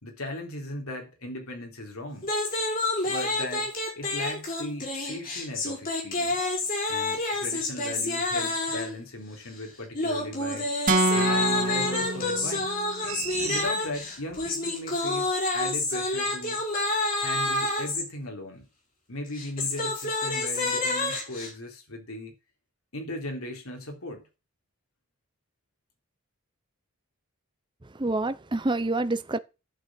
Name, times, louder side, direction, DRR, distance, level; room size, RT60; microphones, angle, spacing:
voice 1, 0.0-2.3 3.0-3.7 4.0-6.5 6.9-10.7 11.1-12.8 13.4-16.6 17.2-18.7 19.1-22.3 22.9-24.2, left 1 dB, 80° left, 3.5 m, -37 dB
sound 1, 2.2-9.0 9.9-18.0 19.3-21.5, left 2 dB, 40° left, 5.3 m, -28 dB
sound 2, 10.9-13.0, right 2 dB, 40° right, 1.8 m, -26 dB
sound 3, 13.0-14.5 14.9-15.0, right 9 dB, 80° right, 2.0 m, -37 dB
voice 2, 27.8-29.4, right 2 dB, 20° right, 0.6 m, -27 dB
11.0 x 6.4 x 6.3 m
head